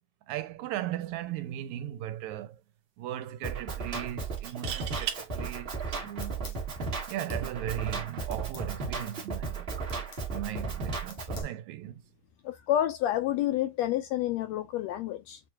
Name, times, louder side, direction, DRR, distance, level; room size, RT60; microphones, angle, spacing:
voice 1, 0.3-2.6 3.0-6.6 7.1-9.7 10.3-12.0, right 12 dB, 85° right, 1.9 m, -37 dB
sound 1, 1.5-1.8 2.1-2.2 4.4-5.2 7.0-7.3, right 9 dB, 60° right, 1.3 m, -36 dB
Drum kit, 3.4-11.4, right 4 dB, 40° right, 0.8 m, -35 dB
sound 2, 6.2-6.6 7.1-7.5 8.3-8.7 9.9-10.3 11.1-11.6, left 7 dB, 60° left, 1.5 m, -50 dB
voice 2, 12.4-15.4, left 12 dB, 75° left, 1.8 m, -29 dB
6.8 x 2.9 x 2.3 m
omnidirectional pair, 3.3 m